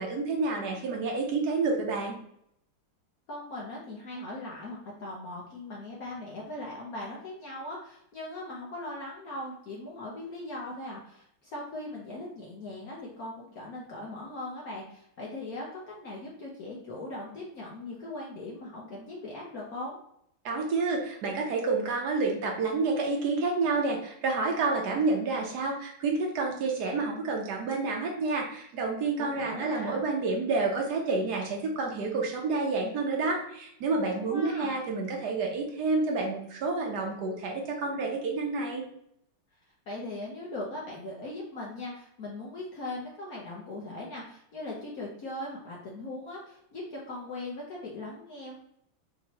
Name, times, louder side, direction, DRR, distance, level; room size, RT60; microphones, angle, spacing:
voice 1, 0.0-2.1 20.4-38.8, right 3 dB, 65° right, 1 dB, 1.0 m, -29 dB
voice 2, 3.3-20.0 29.2-30.0 34.1-34.7 39.9-48.6, left 2 dB, 60° left, -4 dB, 1.0 m, -39 dB
4.4 x 3.0 x 2.8 m, 0.73 s
omnidirectional pair, 2.4 m